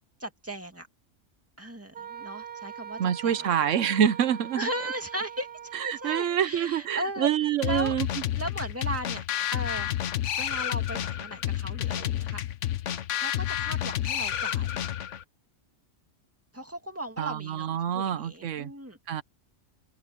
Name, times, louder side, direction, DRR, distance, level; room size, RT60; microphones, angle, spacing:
voice 1, 0.2-0.9 1.6-3.7 4.6-7.3 7.6-8.0 8.4-9.2 9.5-9.9 10.4-12.4 13.1-14.7 16.5-19.0, right 1 dB, 10° right, 2.2 m, -36 dB
Wind instrument woodwind instrument, 1.9-6.3, right 8 dB, 45° right, 1.7 m, -42 dB
voice 2, 3.0-4.7 5.7-8.1 17.2-18.7 19.1-19.2, right 9 dB, 85° right, 1.1 m, -26 dB
sound 1, 7.6-15.2, left 11 dB, 80° left, 1.1 m, -30 dB
omnidirectional pair, 1.3 m